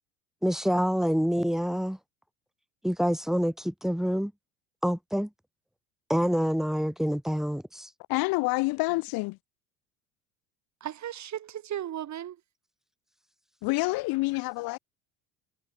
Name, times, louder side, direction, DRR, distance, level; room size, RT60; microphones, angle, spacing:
voice 1, 0.4-2.0 2.8-4.3 4.8-5.3 6.1-7.9, equal, ahead, 5.6 m, -27 dB
voice 2, 8.1-9.4 13.6-14.8, left 23 dB, 60° left, 4.6 m, -27 dB
voice 3, 10.8-12.4, right 11 dB, 45° right, 5.5 m, -36 dB
hypercardioid pair, 80°, 39 cm